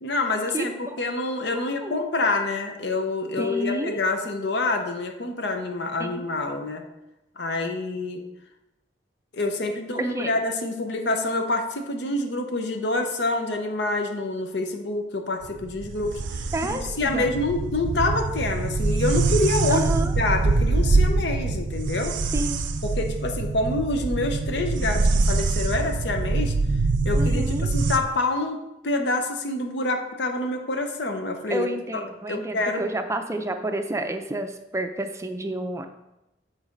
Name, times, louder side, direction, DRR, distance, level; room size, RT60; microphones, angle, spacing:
voice 1, 0.0-6.8 7.4-8.2 9.3-22.1 22.8-26.5 27.0-31.7 31.9-32.8, left 2 dB, 65° left, 5 dB, 0.7 m, -27 dB
voice 2, 0.5-1.0 1.5-2.0 3.4-4.0 6.0-6.2 10.0-10.3 16.5-17.3 19.7-20.1 22.3-22.7 27.1-27.7 31.5-35.9, right 1 dB, 15° right, 7 dB, 0.5 m, -30 dB
sound 1, 15.4-28.0, right 3 dB, 80° right, 0.5 m, -24 dB
7.2 x 4.1 x 5.2 m, 0.93 s
head